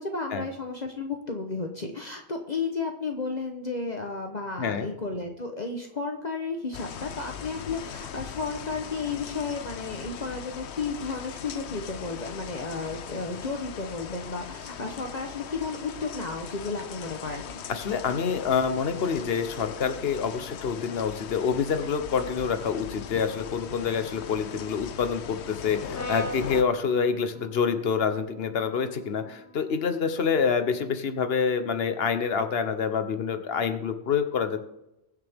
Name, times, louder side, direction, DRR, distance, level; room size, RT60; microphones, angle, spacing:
voice 1, 0.0-17.5, left 4 dB, 40° left, 3 dB, 1.1 m, -33 dB
voice 2, 4.6-4.9 17.7-34.6, left 6 dB, 65° left, 9 dB, 1.2 m, -27 dB
sound 1, 6.7-26.6, left 9 dB, 90° left, 1.0 m, -40 dB
Brass instrument, 25.9-30.2, equal, 15° left, 1.4 m, -41 dB
21.5 x 7.3 x 3.6 m, 0.89 s
omnidirectional pair, 1.1 m